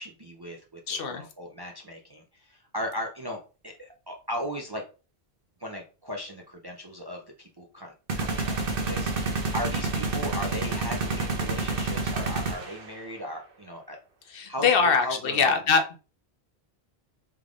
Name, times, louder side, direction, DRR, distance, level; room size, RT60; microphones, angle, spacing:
voice 1, 0.0-4.8 5.6-14.0 14.5-15.5, equal, 35° right, 1 dB, 0.4 m, -37 dB
voice 2, 0.9-1.2 14.3-16.0, left 5 dB, 65° left, 5 dB, 0.8 m, -23 dB
sound 1, 8.1-12.9, right 3 dB, 60° right, 1.0 m, -29 dB
3.5 x 3.4 x 2.4 m, 0.33 s
omnidirectional pair, 1.1 m